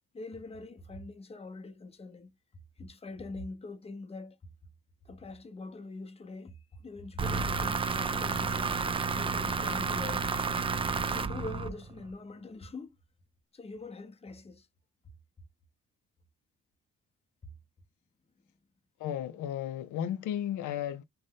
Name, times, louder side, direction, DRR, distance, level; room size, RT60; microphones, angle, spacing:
voice 1, 0.1-2.3 2.8-4.4 5.1-6.5 6.8-8.8 9.1-10.3 11.0-12.9 13.5-14.6, left 3 dB, 20° left, 0.7 m, -43 dB
sound 1, 7.2-12.1, right 4 dB, 20° right, 0.3 m, -31 dB
voice 2, 19.0-21.0, left 10 dB, 75° left, 0.5 m, -34 dB
2.6 x 2.1 x 3.4 m
cardioid pair, 90°, 30 cm